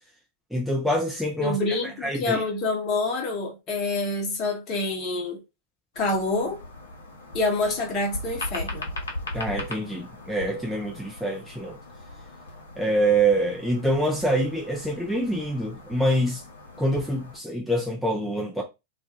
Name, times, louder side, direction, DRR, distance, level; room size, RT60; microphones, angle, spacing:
voice 1, 0.5-2.4 9.3-11.8 12.8-16.4 16.8-18.6, right 1 dB, ahead, 0.5 m, -25 dB
voice 2, 1.4-5.4 6.0-6.6 7.3-8.9, left 2 dB, 35° left, 0.9 m, -27 dB
sound 1, 5.9-17.4, left 2 dB, 70° left, 0.7 m, -39 dB
2.4 x 2.3 x 2.9 m
figure-of-eight pair, 90°, 0 cm